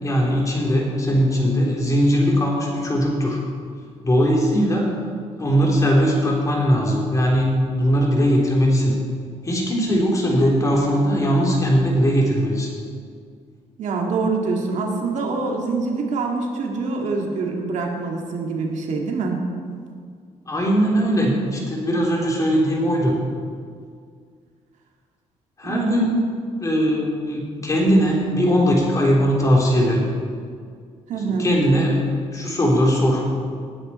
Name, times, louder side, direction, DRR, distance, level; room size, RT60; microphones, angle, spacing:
voice 1, 0.0-3.4 4.0-4.9 5.4-9.0 9.4-12.7 20.5-23.1 25.6-26.2 26.6-30.0 31.2-33.3, equal, 25° left, -2 dB, 3.3 m, -19 dB
voice 2, 13.8-19.4 25.6-26.0 31.1-31.5, right 4 dB, 70° right, 1 dB, 2.0 m, -25 dB
19.0 x 9.6 x 4.2 m, 2.1 s
cardioid pair, 120°, 13 cm